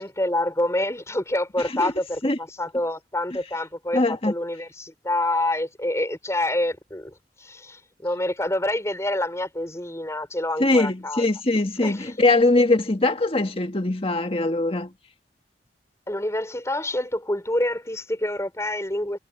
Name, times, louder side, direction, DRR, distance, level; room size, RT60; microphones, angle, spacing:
voice 1, 0.0-11.3 11.8-12.1 16.1-19.2, left 1 dB, 15° left, 4.7 m, -27 dB
voice 2, 3.9-4.3 10.6-14.9, left 2 dB, 35° left, 1.7 m, -21 dB
head